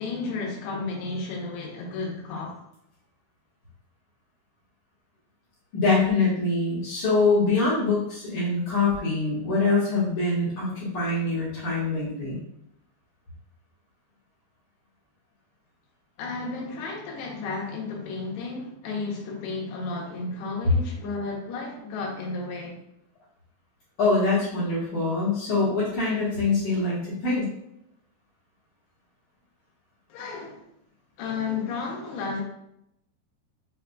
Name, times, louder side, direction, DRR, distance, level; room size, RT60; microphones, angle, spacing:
voice 1, 0.0-2.6 16.2-22.8 30.1-30.6 31.2-32.4, left 4 dB, 85° left, -1 dB, 2.9 m, -33 dB
voice 2, 5.7-12.4 24.0-27.5, left 3 dB, 65° left, -9 dB, 2.1 m, -24 dB
6.4 x 2.3 x 2.3 m, 0.77 s
omnidirectional pair, 4.7 m